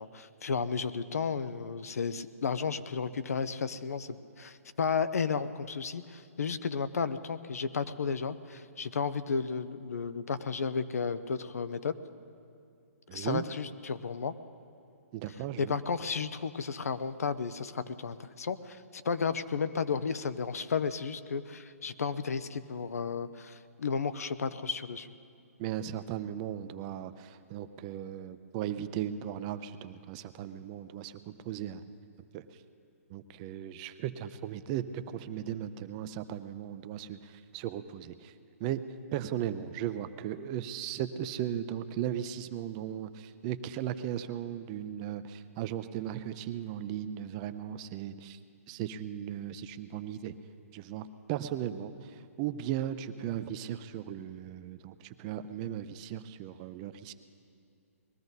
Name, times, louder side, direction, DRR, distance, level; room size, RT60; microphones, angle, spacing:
voice 1, 0.0-11.9 13.1-14.3 15.6-25.1, left 5 dB, 80° left, 13 dB, 0.7 m, -33 dB
voice 2, 13.1-13.4 15.1-15.8 25.6-31.8 32.3-32.5 33.1-38.3 38.6-38.8 39.1-48.4 48.7-50.3 50.7-57.1, right 10 dB, 25° right, 11 dB, 0.5 m, -37 dB
21.0 x 13.5 x 4.0 m, 2.5 s
hypercardioid pair, 150°, 8 cm